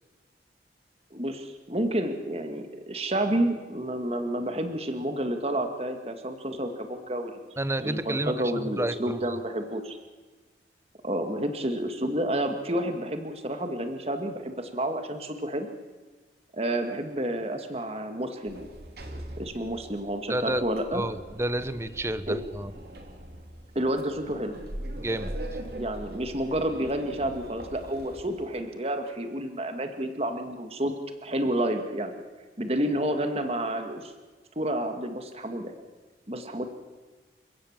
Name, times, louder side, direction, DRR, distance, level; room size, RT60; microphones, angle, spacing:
voice 1, 1.1-7.4 7.8-10.0 11.0-15.7 16.5-18.7 19.4-21.0 22.3-22.4 23.8-24.6 25.8-30.9 31.2-32.2 32.6-34.1 34.6-35.8 36.3-36.7, right 1 dB, 35° right, 6 dB, 2.1 m, -30 dB
voice 2, 7.6-9.2 20.3-20.6 20.9-22.7 25.0-25.3, right 1 dB, 15° right, 13 dB, 0.9 m, -30 dB
Sliding door, 18.5-28.6, right 1 dB, 55° right, 3.0 m, -41 dB
29.5 x 16.5 x 7.5 m, 1.3 s
head